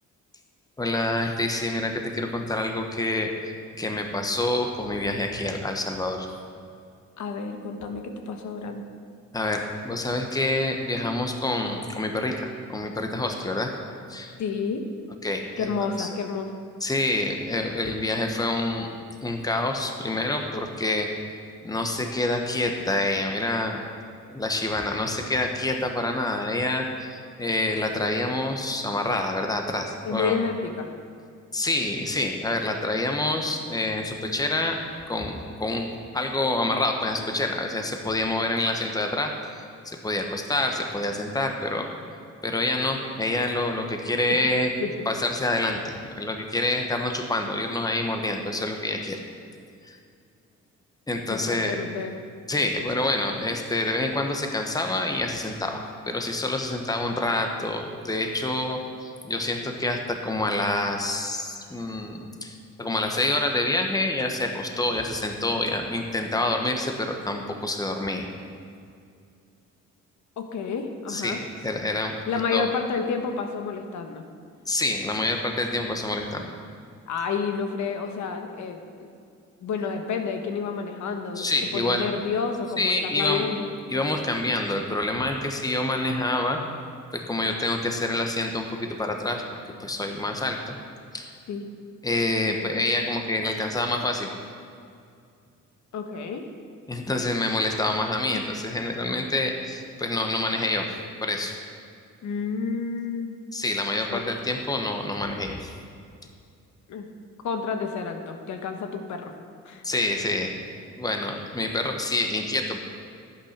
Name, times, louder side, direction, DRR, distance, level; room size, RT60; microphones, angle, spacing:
voice 1, 0.8-3.3 3.8-6.3 9.3-13.7 14.1-14.4 15.2-16.1 16.8-18.9 19.2-21.1 21.6-23.8 24.3-30.4 31.5-34.8 35.1-41.9 42.4-44.7 45.0-49.2 49.8-50.0 51.1-51.8 52.5-68.3 71.1-72.2 72.5-72.7 74.7-76.5 81.4-82.1 82.8-83.5 83.9-86.6 87.1-89.4 89.8-90.7 91.1-91.4 92.0-94.3 96.9-100.9 101.2-101.6 103.5-105.7 109.8-110.5 111.0-112.8, left 2 dB, 10° left, 3 dB, 1.3 m, -27 dB
voice 2, 7.2-8.8 14.4-14.8 15.6-16.5 30.0-30.9 44.3-44.4 44.8-45.1 51.3-52.1 70.4-71.4 72.3-74.2 77.1-79.1 79.6-81.5 81.7-83.7 91.5-91.7 92.5-92.6 95.9-96.5 98.3-98.4 102.2-103.4 104.1-104.2 106.9-107.1 107.4-109.3 109.6-109.8, left 5 dB, 70° left, 5 dB, 1.3 m, -30 dB
11.0 x 8.8 x 5.9 m, 2.3 s
cardioid pair, 90°, 30 cm